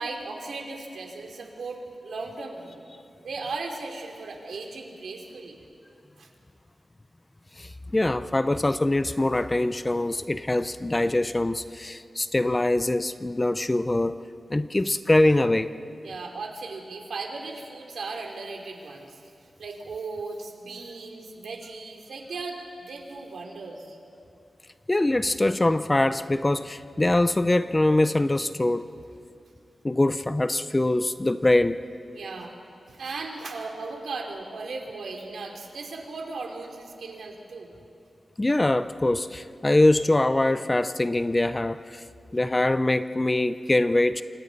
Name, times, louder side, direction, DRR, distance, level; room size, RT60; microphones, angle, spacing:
voice 1, 0.0-2.8 3.2-5.6 6.2-6.3 16.0-19.3 19.6-24.0 32.1-32.5 32.9-37.7, right 3 dB, 80° right, 1 dB, 2.8 m, -37 dB
voice 2, 7.6-14.1 14.5-15.7 24.9-28.8 29.8-31.8 38.4-42.0 42.3-44.2, left 1 dB, 15° left, 12 dB, 0.4 m, -23 dB
28.0 x 25.5 x 4.0 m, 2.5 s
wide cardioid pair, 170°, 0 cm